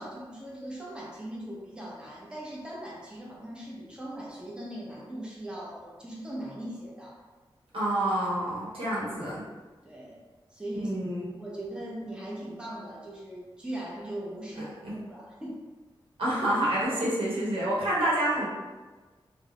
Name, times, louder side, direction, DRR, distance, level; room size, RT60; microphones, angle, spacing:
voice 1, 0.0-7.2 9.8-10.2 10.5-10.9 11.3-14.7 15.1-15.6, right 1 dB, 10° right, -5 dB, 0.7 m, -39 dB
voice 2, 7.7-9.4 10.8-11.2 14.6-14.7 16.2-18.5, right 1 dB, 85° right, -7 dB, 0.8 m, -28 dB
2.4 x 2.0 x 2.9 m, 1.3 s
wide cardioid pair, 70°, 9 cm